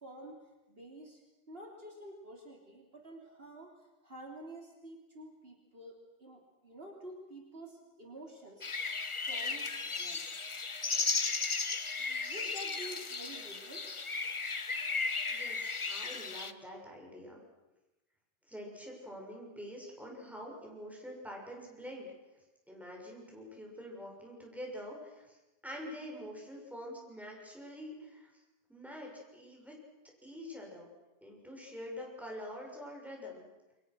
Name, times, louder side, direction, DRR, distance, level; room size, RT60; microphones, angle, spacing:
voice 1, 0.0-0.4 0.7-1.2 1.5-3.7 4.0-8.7 9.3-10.2 12.0-13.8, right 1 dB, 60° right, 1 dB, 3.7 m, -49 dB
sound 1, 8.6-16.5, left 4 dB, 30° left, 0.9 m, -35 dB
voice 2, 15.3-17.4 18.5-22.1 22.7-25.4 25.6-28.3 28.7-29.8 30.2-30.9 31.2-33.5, equal, ahead, -1 dB, 6.8 m, -46 dB
29.5 x 23.0 x 6.3 m, 1.0 s
omnidirectional pair, 1.1 m